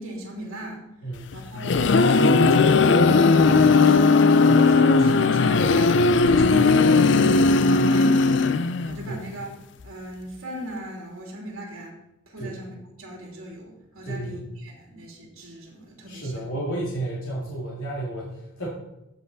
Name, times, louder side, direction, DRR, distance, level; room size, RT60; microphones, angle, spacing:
voice 1, 0.0-0.8 1.3-4.2 4.5-9.6 9.8-11.9 12.3-16.4, right 1 dB, 80° right, -2 dB, 3.1 m, -39 dB
voice 2, 1.0-1.4 4.4-4.7 6.5-6.7 7.1-7.5 9.1-9.2 12.4-12.6 14.0-14.4 16.1-18.7, right 1 dB, 85° left, -5 dB, 2.4 m, -32 dB
sound 1, 1.3-9.0, left 4 dB, 55° left, 0.5 m, -17 dB
15.0 x 5.7 x 4.1 m, 0.90 s
head